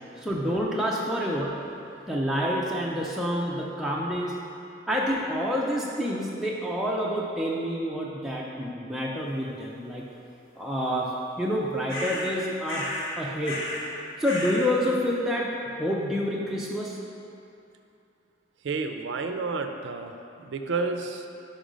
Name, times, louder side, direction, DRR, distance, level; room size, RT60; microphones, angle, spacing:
voice 1, 0.1-1.6 2.1-4.4 4.9-10.0 10.6-12.9 13.2-13.6 14.2-15.5 15.8-17.0, equal, ahead, -5 dB, 0.4 m, -28 dB
sound 1, 11.9-12.3 12.7-13.2 13.4-13.9 14.2-14.7, left 1 dB, 80° left, 1.1 m, -33 dB
voice 2, 18.6-20.1 20.5-21.2, right 4 dB, 65° right, 5 dB, 0.4 m, -30 dB
5.3 x 5.1 x 5.0 m, 2.7 s
head